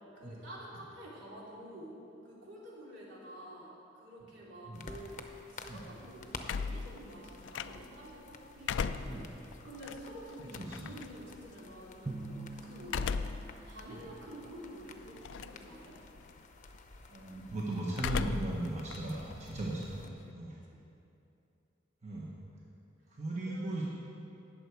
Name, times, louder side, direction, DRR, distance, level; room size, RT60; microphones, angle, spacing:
voice 1, 0.1-1.9 2.2-5.2 5.5-13.3 13.6-15.9 20.4-20.8 23.4-23.8, equal, 70° right, -6 dB, 3.2 m, -49 dB
sound 1, 4.7-20.1, left 3 dB, 40° left, 0.7 m, -51 dB
sound 2, 6.4-8.1 8.5-11.0 12.8-13.5 14.0-14.1 15.2-15.7 16.0-16.4 17.9-18.6 18.9-20.3, left 5 dB, 70° left, 0.4 m, -37 dB
voice 2, 10.5-10.9 17.1-20.0 20.3-20.6 22.0-22.3 23.1-23.8, right 2 dB, 40° right, -5 dB, 1.2 m, -37 dB
Drum, 12.1-14.2, right 2 dB, 20° right, 0.6 m, -45 dB
18.0 x 6.8 x 4.7 m, 2.7 s
head